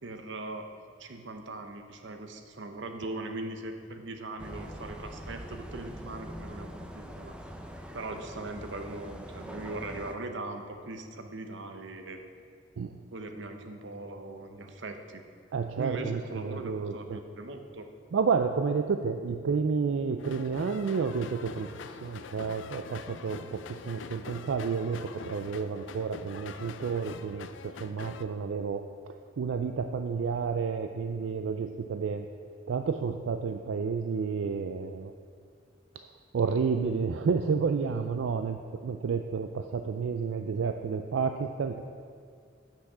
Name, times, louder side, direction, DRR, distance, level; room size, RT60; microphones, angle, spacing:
voice 1, 0.0-0.7 1.0-7.3 7.9-12.2 13.1-15.2 15.8-17.9, right 2 dB, 70° right, 6 dB, 0.8 m, -40 dB
sound 1, 4.4-10.1, equal, 5° right, 0.5 m, -43 dB
voice 2, 15.5-17.2 18.1-21.7 22.0-28.8 29.4-32.3 32.7-35.1 36.3-41.8, right 5 dB, 90° right, 6 dB, 0.4 m, -30 dB
sound 2, 20.2-28.2, left 5 dB, 75° left, 0.4 m, -44 dB
8.8 x 5.9 x 6.1 m, 2.1 s
head